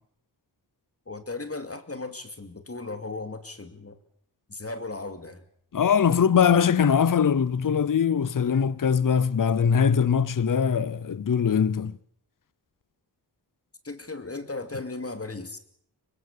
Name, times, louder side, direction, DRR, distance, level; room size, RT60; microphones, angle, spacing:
voice 1, 1.1-4.0 4.5-5.4 13.8-15.6, left 3 dB, 35° left, 2.6 m, -36 dB
voice 2, 5.7-11.9, left 7 dB, 50° left, 0.8 m, -22 dB
24.5 x 20.5 x 6.9 m
cardioid pair, 60°, 41 cm